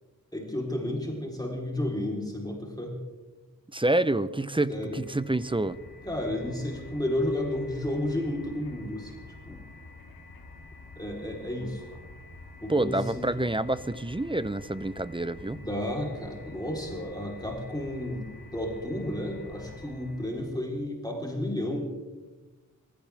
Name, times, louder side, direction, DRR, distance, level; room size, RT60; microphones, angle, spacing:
voice 1, 0.3-3.0 4.7-5.0 6.0-9.6 11.0-11.8 12.6-13.3 15.5-18.2 18.5-21.8, left 1 dB, 10° left, -1 dB, 4.0 m, -32 dB
voice 2, 3.7-5.8 12.7-15.6, right 2 dB, 15° right, 15 dB, 0.8 m, -27 dB
sound 1, 4.4-20.6, left 3 dB, 90° left, 2.0 m, -48 dB
25.5 x 15.5 x 3.6 m, 1.2 s
cardioid pair, 45°, 34 cm